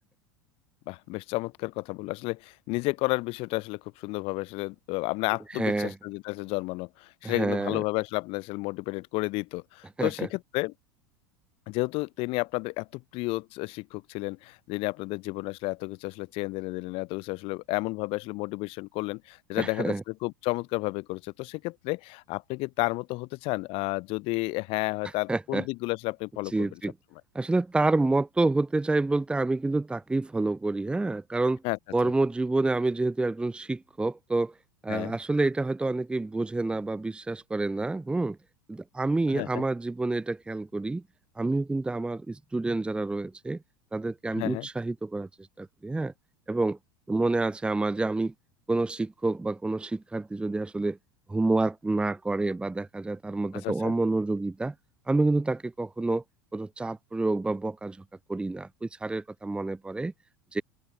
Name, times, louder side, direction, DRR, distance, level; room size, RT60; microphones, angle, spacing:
voice 1, 0.9-10.7 11.7-19.9 20.2-26.8 31.6-31.8 34.9-35.1 39.3-39.6 44.3-44.7 53.5-53.9, left 24 dB, 55° left, 3.5 m, -32 dB
voice 2, 5.5-5.9 7.2-7.8 10.0-10.3 19.6-20.0 25.3-25.6 26.5-26.9 27.3-31.6 31.9-34.5 34.8-38.4 38.7-41.0 41.4-43.6 43.9-45.3 45.6-46.1 46.5-46.8 47.1-48.3 48.7-51.0 51.3-54.7 55.1-56.2 56.5-58.0 58.3-60.1 60.5-60.6, right 2 dB, 10° right, 0.8 m, -28 dB
hypercardioid pair, 95°, 11 cm